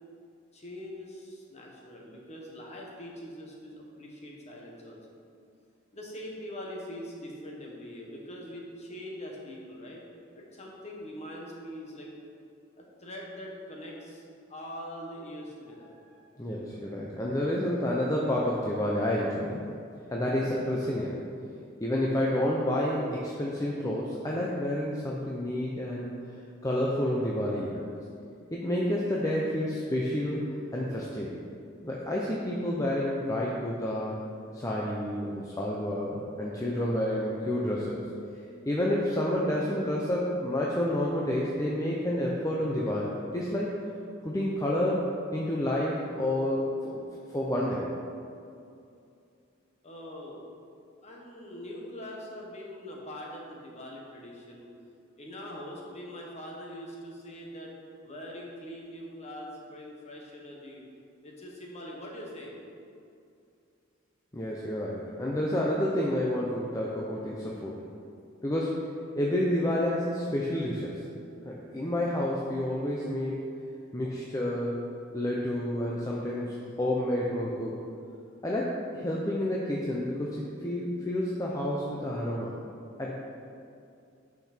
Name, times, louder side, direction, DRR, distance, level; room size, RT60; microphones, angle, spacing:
voice 1, 0.5-5.0 5.9-10.0 10.3-12.1 12.8-14.2 14.5-15.9 49.8-50.5 51.0-54.7 55.2-57.7 58.0-60.8 61.2-62.5, equal, 35° left, -2 dB, 1.5 m, -43 dB
voice 2, 16.4-19.6 20.1-21.2 21.8-26.2 26.6-27.8 28.5-30.4 30.7-31.3 31.8-34.1 34.5-38.0 38.6-43.8 44.2-45.0 45.3-47.0 47.3-47.9 64.3-67.8 68.4-68.8 69.2-71.0 71.4-73.4 73.9-74.8 75.1-77.8 78.4-82.5 83.0-83.1, left 1 dB, 15° left, -4 dB, 0.7 m, -29 dB
8.7 x 6.0 x 4.4 m, 2.5 s
head